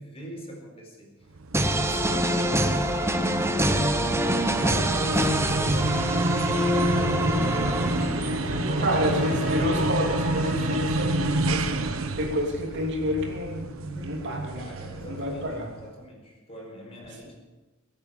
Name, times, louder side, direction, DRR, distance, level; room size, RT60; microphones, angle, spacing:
voice 1, 0.0-6.4 6.6-9.0 13.8-17.4, right 1 dB, 30° left, 0 dB, 4.5 m, -43 dB
sound 1, 1.4-15.9, right 2 dB, 80° right, 1.1 m, -30 dB
sound 2, 1.5-8.5, equal, 10° right, 1.0 m, -25 dB
voice 2, 5.0-5.3 7.2-7.5 8.8-13.7 14.0-14.6 15.1-15.7, left 1 dB, 60° right, 0 dB, 3.1 m, -29 dB
sound 3, 7.0-12.4, right 1 dB, 40° right, 6.2 m, -34 dB
21.5 x 8.8 x 7.6 m, 1.2 s
head